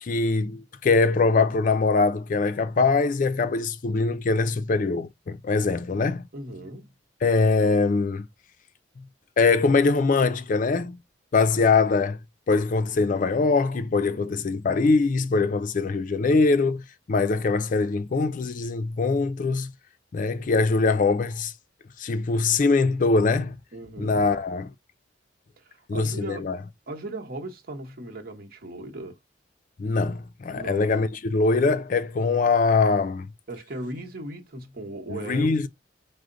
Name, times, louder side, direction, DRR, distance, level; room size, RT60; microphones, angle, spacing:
voice 1, 0.0-6.3 7.2-8.3 9.4-11.0 11.3-12.2 12.5-16.8 17.1-19.7 20.1-21.5 22.0-23.6 24.0-24.7 25.9-26.6 29.8-33.3 35.1-35.7, left 4 dB, 45° left, 0.4 m, -22 dB
voice 2, 6.3-6.9 14.1-14.5 23.7-24.2 25.6-26.4 26.9-29.2 30.5-30.9 33.5-35.7, right 1 dB, 55° right, 1.1 m, -38 dB
4.9 x 2.1 x 3.8 m
head